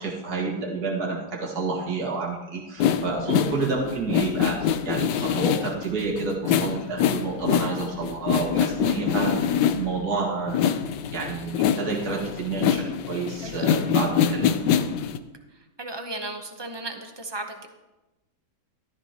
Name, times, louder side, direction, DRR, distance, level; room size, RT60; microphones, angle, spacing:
voice 1, 0.0-10.7 11.1-14.6, right 4 dB, 65° right, -2 dB, 2.2 m, -29 dB
sound 1, 2.8-10.1 10.5-15.2, left 8 dB, 80° left, 1.3 m, -24 dB
voice 2, 13.4-13.8 15.8-17.7, right 2 dB, 20° right, 4 dB, 0.7 m, -35 dB
13.5 x 13.0 x 2.9 m, 1.0 s
omnidirectional pair, 1.8 m